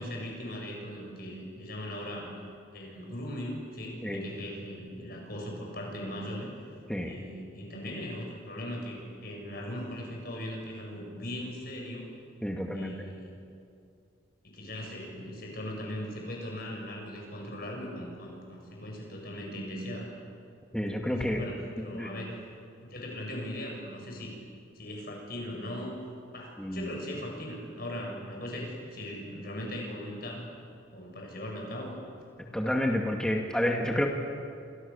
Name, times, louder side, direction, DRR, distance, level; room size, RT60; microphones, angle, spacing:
voice 1, 0.0-2.3 2.7-6.5 7.0-12.1 12.7-13.4 14.4-20.1 21.0-22.3 22.8-24.3 24.8-26.0 26.3-30.4 30.9-32.0, equal, 50° left, 0 dB, 7.3 m, -39 dB
voice 2, 12.4-13.0 20.7-21.4 21.9-22.1 26.6-26.9 32.5-34.1, left 1 dB, 5° left, 1 dB, 2.3 m, -29 dB
29.0 x 27.0 x 7.2 m, 2.4 s
head